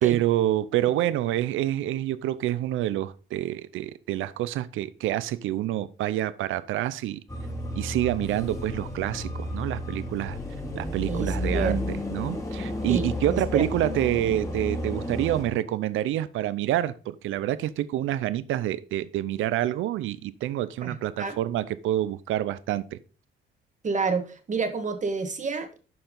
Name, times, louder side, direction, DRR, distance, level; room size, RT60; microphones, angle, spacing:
voice 1, 0.0-7.2 7.8-10.4 10.7-23.0, right 13 dB, 80° right, 0.6 m, -27 dB
sound 1, 7.3-15.4, left 1 dB, 15° left, 2.9 m, -32 dB
voice 2, 11.1-11.8 12.9-13.6 20.8-21.4 23.8-25.8, right 4 dB, 40° right, 1.7 m, -29 dB
12.0 x 4.6 x 3.8 m
cardioid pair, 90°, 20 cm